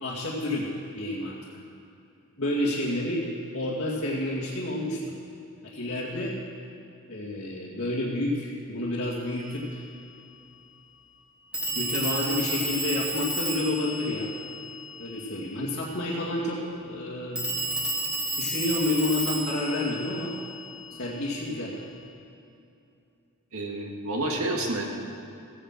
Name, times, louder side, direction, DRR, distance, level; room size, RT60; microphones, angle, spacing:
voice 1, 0.0-0.7 0.9-1.4 2.4-3.2 3.5-5.2 5.6-6.4 7.1-9.8 11.7-14.3 15.0-17.4 18.4-20.3 21.0-21.8, left 1 dB, 55° left, -9 dB, 2.2 m, -29 dB
Telephone, 9.3-9.4 11.5-15.2 17.4-21.1, right 1 dB, 5° right, 2.4 m, -32 dB
voice 2, 23.5-24.8, right 1 dB, 75° right, 0 dB, 2.2 m, -29 dB
15.5 x 9.9 x 7.5 m, 2.7 s
head